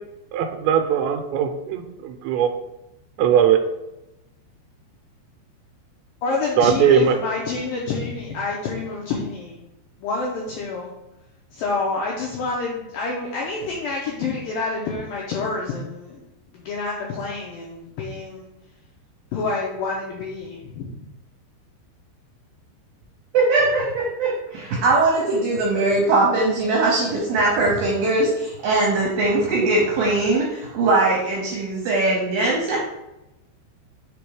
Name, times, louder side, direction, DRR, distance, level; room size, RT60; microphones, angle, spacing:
voice 1, 0.3-2.5 3.2-3.6 6.6-7.2, right 8 dB, 90° right, 6 dB, 3.0 m, -19 dB
voice 2, 6.2-9.6 10.0-10.9 11.5-16.2 16.5-18.5 19.3-21.0, left 3 dB, 85° left, -3 dB, 2.0 m, -28 dB
voice 3, 23.3-32.8, right 2 dB, 75° right, -2 dB, 2.2 m, -20 dB
6.7 x 3.5 x 4.7 m, 0.92 s
omnidirectional pair, 5.2 m